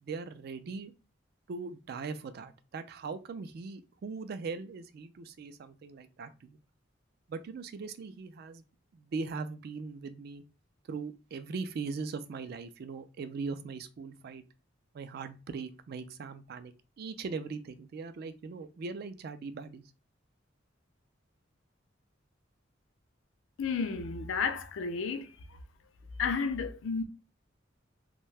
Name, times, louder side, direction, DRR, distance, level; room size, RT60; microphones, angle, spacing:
voice 1, 0.0-0.9 1.5-6.6 7.3-8.6 8.9-10.4 10.9-14.4 14.9-19.8, right 4 dB, 55° right, 0.3 m, -40 dB
voice 2, 23.6-25.3 26.2-27.0, left 5 dB, 85° left, 0.4 m, -32 dB
2.7 x 2.2 x 3.2 m
head